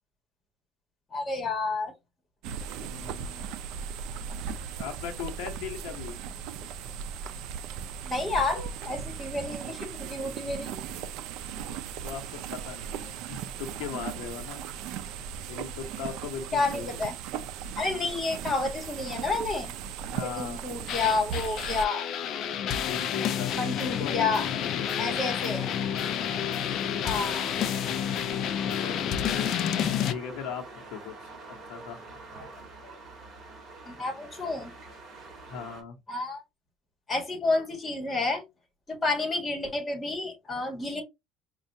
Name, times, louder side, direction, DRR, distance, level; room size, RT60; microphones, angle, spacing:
voice 1, 1.1-1.9 8.0-10.8 16.5-17.1 17.8-19.7 20.2-22.1 23.5-24.4 25.0-25.7 27.0-27.5 33.8-34.7 36.1-36.4 37.1-38.4 38.9-41.0, left 3 dB, 15° left, 1.4 m, -30 dB
sound 1, 2.4-21.9, right 7 dB, 65° right, 0.4 m, -37 dB
voice 2, 2.8-3.5 4.8-6.2 12.0-14.6 15.5-17.0 20.1-20.6 22.7-25.2 28.0-29.5 30.1-30.6 30.9-31.2 31.5-32.2 35.5-36.0, left 7 dB, 70° left, 0.9 m, -39 dB
sound 2, 20.9-30.1, left 9 dB, 50° left, 0.5 m, -29 dB
sound 3, 24.6-35.8, right 3 dB, 30° right, 2.1 m, -46 dB
5.3 x 2.4 x 2.7 m
cardioid pair, 145°, 0 cm